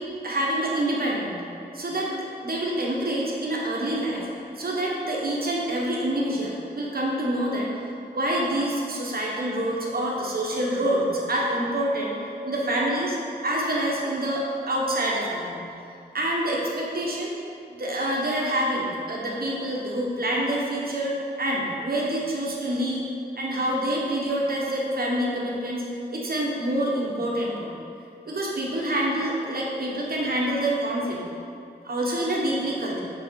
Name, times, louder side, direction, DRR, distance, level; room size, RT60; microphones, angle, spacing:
voice 1, 0.2-1.4 1.7-4.3 4.6-7.7 8.1-12.1 12.4-13.2 13.4-15.6 16.1-17.3 17.7-23.0 23.4-27.7 28.3-31.2 31.8-33.0, right 1 dB, 55° right, -3 dB, 1.3 m, -26 dB
7.7 x 4.0 x 4.7 m, 2.5 s
wide cardioid pair, 80°, 18 cm